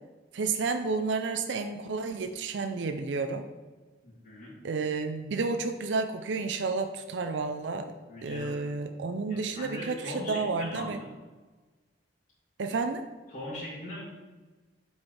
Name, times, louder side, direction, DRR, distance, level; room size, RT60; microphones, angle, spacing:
voice 1, 0.3-3.5 4.6-7.9 8.2-11.0 12.6-13.1, right 4 dB, 80° right, 7 dB, 0.5 m, -31 dB
voice 2, 4.0-4.5 8.1-8.6 9.3-11.1 13.3-14.0, left 1 dB, 45° left, -11 dB, 2.1 m, -40 dB
7.5 x 4.5 x 4.6 m, 1.3 s
head